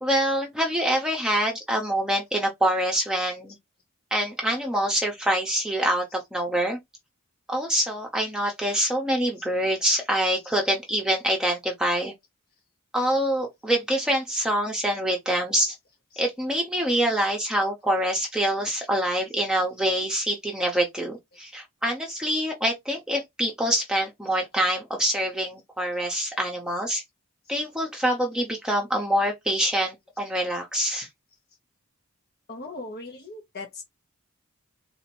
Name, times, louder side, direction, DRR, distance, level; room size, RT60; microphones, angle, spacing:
voice 1, 0.0-3.5 4.1-6.8 7.5-12.1 12.9-15.7 16.2-27.0 27.5-31.1, right 1 dB, 5° right, 0.8 m, -25 dB
voice 2, 32.5-33.8, left 2 dB, 45° left, 0.8 m, -38 dB
3.9 x 2.8 x 4.3 m
head